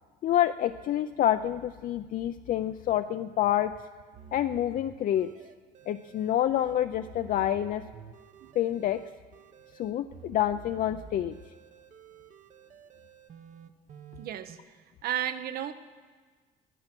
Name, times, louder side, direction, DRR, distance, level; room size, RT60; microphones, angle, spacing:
voice 1, 0.2-3.7 4.3-5.3 5.9-7.8 8.6-9.0 9.8-11.4, left 11 dB, 55° left, 8 dB, 0.5 m, -27 dB
sound 1, 4.1-14.6, right 7 dB, 50° right, 1.0 m, -50 dB
voice 2, 14.2-14.6 15.0-15.7, right 11 dB, 65° right, 11 dB, 1.0 m, -33 dB
19.0 x 11.0 x 6.1 m, 1.4 s
cardioid pair, 110°, 17 cm